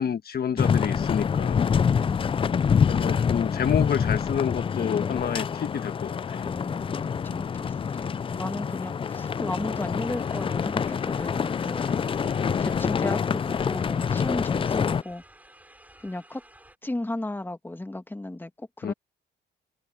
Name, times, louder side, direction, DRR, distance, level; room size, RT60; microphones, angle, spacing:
voice 1, 0.0-1.7 2.9-6.4 12.2-12.7 18.8-18.9, left 8 dB, 50° left, 1.3 m, -29 dB
sound 1, 0.6-15.0, left 6 dB, 25° left, 0.4 m, -26 dB
voice 2, 2.0-2.3 6.4-11.9 12.4-15.2 16.0-16.4 16.8-18.9, left 2 dB, 10° left, 1.7 m, -35 dB
sound 2, 9.9-16.8, right 1 dB, 10° right, 7.0 m, -53 dB
open air
cardioid pair, 90°, 20 cm